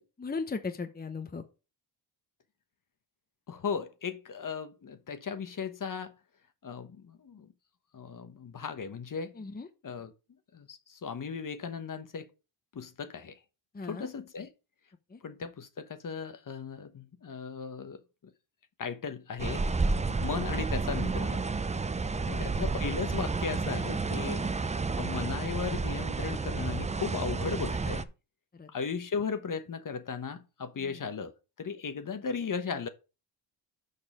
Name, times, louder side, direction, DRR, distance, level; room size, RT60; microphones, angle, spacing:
voice 1, 0.0-1.4 9.4-9.7 13.7-14.1 15.1-15.2 20.1-20.2 22.3-22.6 24.3-24.5 28.6-28.7, left 4 dB, 20° left, 0.9 m, -38 dB
voice 2, 3.5-6.1 6.6-7.5 7.9-9.4 9.8-10.1 10.5-12.3 12.7-13.4 13.8-14.5 15.2-18.0 18.8-19.6 20.2-21.4 22.3-24.4 25.0-28.1 28.7-32.9, left 6 dB, 40° left, 1.1 m, -36 dB
sound 1, 19.4-28.0, right 4 dB, 15° right, 0.5 m, -31 dB
6.7 x 5.4 x 4.9 m
cardioid pair, 85°, 47 cm